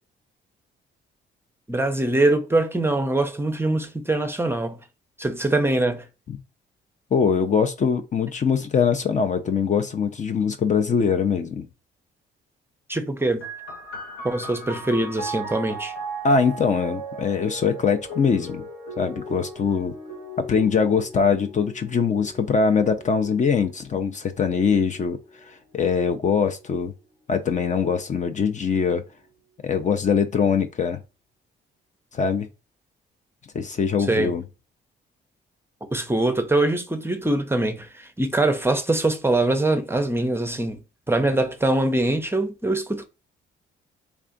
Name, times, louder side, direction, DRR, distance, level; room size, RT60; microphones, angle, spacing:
voice 1, 1.7-4.8 5.2-6.1 12.9-13.5 14.2-15.9 34.1-34.3 35.9-40.8 41.1-43.1, right 2 dB, 10° right, 0.6 m, -23 dB
voice 2, 7.1-11.7 16.2-18.6 19.0-19.9 20.4-25.2 25.5-26.9 27.3-29.0 29.6-31.0 32.1-32.5 33.5-34.4, left 6 dB, 40° left, 0.5 m, -22 dB
sound 1, 13.4-26.6 27.5-28.3, right 1 dB, 85° left, 1.5 m, -38 dB
3.4 x 2.4 x 3.8 m
cardioid pair, 90°, 20 cm